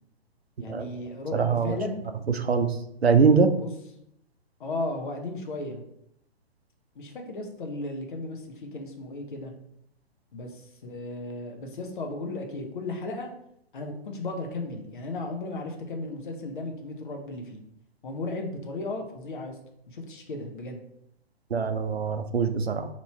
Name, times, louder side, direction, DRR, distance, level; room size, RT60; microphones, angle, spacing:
voice 1, 0.6-2.0 3.5-3.7 4.6-5.8 6.9-9.5 10.3-13.3 13.7-17.6 18.0-19.6 19.9-20.8, left 2 dB, 55° left, 3 dB, 0.8 m, -35 dB
voice 2, 1.3-1.8 2.4-2.7 3.0-3.5 21.5-22.9, right 5 dB, 85° right, 8 dB, 0.5 m, -22 dB
3.0 x 2.7 x 4.3 m, 0.76 s
figure-of-eight pair, 120°, 31 cm